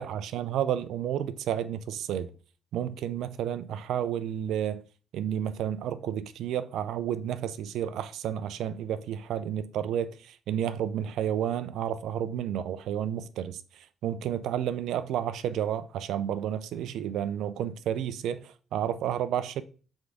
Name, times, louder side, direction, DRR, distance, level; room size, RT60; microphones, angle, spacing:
voice 1, 0.0-2.3 2.7-4.8 5.1-13.6 14.0-19.6, right 10 dB, 80° right, 0.5 m, -31 dB
7.6 x 3.6 x 3.5 m
cardioid pair, 90°, 0 cm